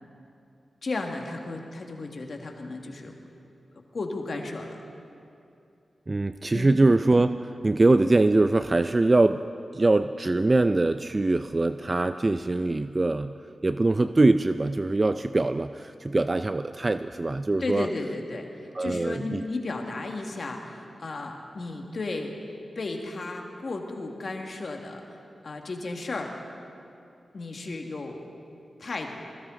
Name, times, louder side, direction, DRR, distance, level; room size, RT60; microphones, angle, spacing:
voice 1, 0.8-3.1 3.8-4.8 6.5-6.7 17.6-22.4 22.8-26.3 27.3-28.3 28.8-29.2, left 3 dB, 60° left, 2 dB, 1.8 m, -34 dB
voice 2, 6.1-9.4 9.7-13.3 13.6-17.9 18.7-19.4, right 2 dB, 35° right, 10 dB, 0.4 m, -23 dB
20.5 x 16.5 x 3.8 m, 2.5 s
cardioid pair, 45°, 0 cm